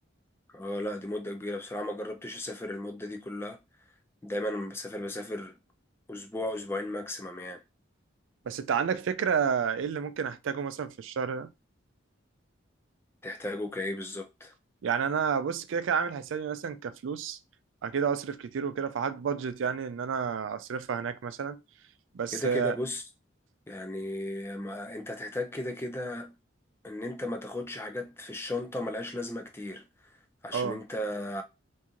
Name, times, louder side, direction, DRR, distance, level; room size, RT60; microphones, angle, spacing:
voice 1, 0.5-3.6 4.2-5.5 6.1-7.6 13.2-14.5 22.3-23.0 23.7-26.3 26.8-30.1 30.4-31.4, left 1 dB, 10° left, 0.3 m, -35 dB
voice 2, 8.5-11.5 14.8-17.4 17.8-21.6 22.1-22.8 30.5-30.8, right 6 dB, 80° right, 0.4 m, -30 dB
2.9 x 2.6 x 3.6 m
head